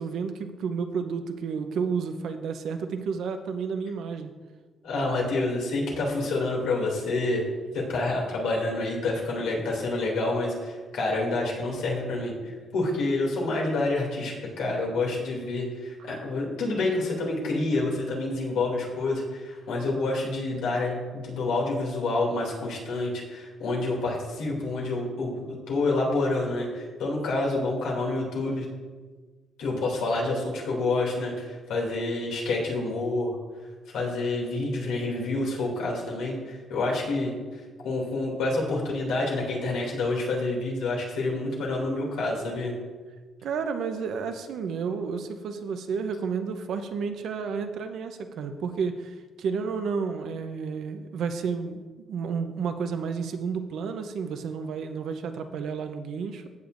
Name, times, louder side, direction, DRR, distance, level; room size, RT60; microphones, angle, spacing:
voice 1, 0.0-4.3 43.4-51.8 52.1-56.5, right 5 dB, 75° right, 7 dB, 0.8 m, -31 dB
voice 2, 4.8-7.4 7.7-28.7 29.6-33.4 33.9-37.3 37.8-42.7, left 2 dB, 90° left, -2 dB, 2.7 m, -28 dB
15.5 x 6.8 x 2.6 m, 1.4 s
cardioid pair, 90°, 0 cm